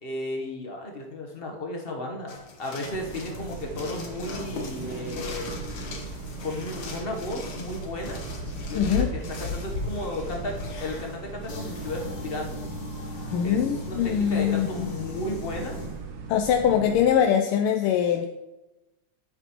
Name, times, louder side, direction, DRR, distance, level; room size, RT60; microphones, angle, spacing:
voice 1, 0.0-5.6 6.4-8.2 8.7-12.6 13.4-15.8 16.6-16.9, left 1 dB, 40° left, 1 dB, 0.9 m, -34 dB
sound 1, 2.3-16.0, left 3 dB, 60° left, 1.9 m, -37 dB
sound 2, 2.8-17.1, right 5 dB, 75° right, 1.8 m, -39 dB
voice 2, 8.7-9.1 13.3-14.9 16.3-18.3, left 9 dB, 85° left, 5 dB, 1.5 m, -23 dB
10.0 x 8.1 x 3.0 m, 1.0 s
omnidirectional pair, 2.4 m